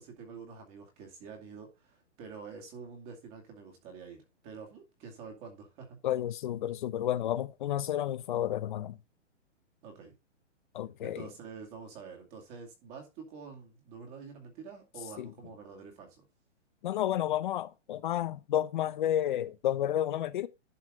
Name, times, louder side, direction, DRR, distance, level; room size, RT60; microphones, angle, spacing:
voice 1, 0.0-6.0 9.8-10.1 11.0-16.2, right 5 dB, 25° right, 2.4 m, -47 dB
voice 2, 6.0-9.0 10.7-11.3 15.2-15.3 16.8-20.5, left 11 dB, 40° left, 0.7 m, -31 dB
11.0 x 5.6 x 3.7 m
hypercardioid pair, 155°, 37 cm